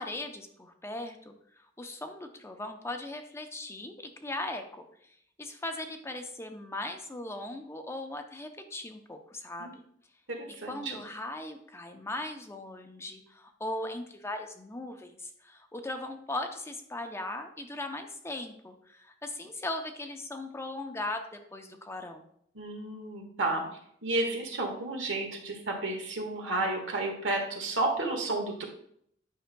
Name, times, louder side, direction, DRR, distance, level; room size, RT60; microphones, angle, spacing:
voice 1, 0.0-9.8 10.7-22.3, left 2 dB, 15° left, 6 dB, 0.6 m, -39 dB
voice 2, 10.3-11.0 22.5-23.6 24.0-28.6, right 2 dB, 90° right, 1 dB, 1.5 m, -31 dB
9.2 x 5.6 x 2.2 m, 0.68 s
head